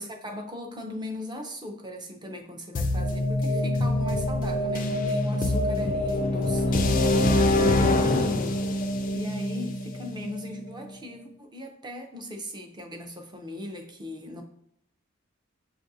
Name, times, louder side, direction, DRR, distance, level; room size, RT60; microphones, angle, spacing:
voice 1, 0.0-14.4, left 1 dB, 20° right, 3 dB, 0.5 m, -38 dB
sound 1, 2.7-10.6, left 1 dB, 40° left, 0.3 m, -25 dB
6.5 x 2.5 x 2.6 m, 0.72 s
head